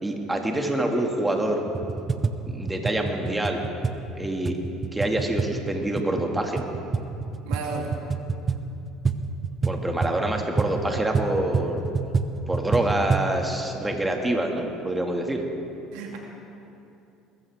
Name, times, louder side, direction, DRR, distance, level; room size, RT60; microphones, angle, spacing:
voice 1, 0.0-1.6 2.5-3.7 4.2-4.6 4.9-6.6 9.6-12.0 12.5-15.4, right 1 dB, 10° right, 2 dB, 2.1 m, -26 dB
sound 1, 1.7-13.3, right 4 dB, 30° right, 0.8 m, -28 dB
voice 2, 7.4-8.0 15.9-16.2, right 4 dB, 80° right, 0 dB, 2.4 m, -33 dB
21.0 x 14.5 x 3.6 m, 2.8 s
supercardioid pair, 85°, 0 cm